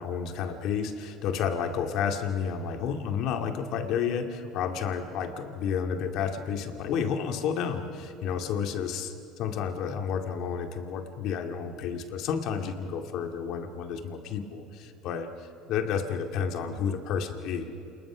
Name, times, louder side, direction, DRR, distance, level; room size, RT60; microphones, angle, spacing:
voice 1, 0.0-15.3 15.7-17.7, left 7 dB, 65° left, 6 dB, 2.2 m, -31 dB
28.0 x 20.5 x 6.2 m, 2.8 s
supercardioid pair, 95°, 0 cm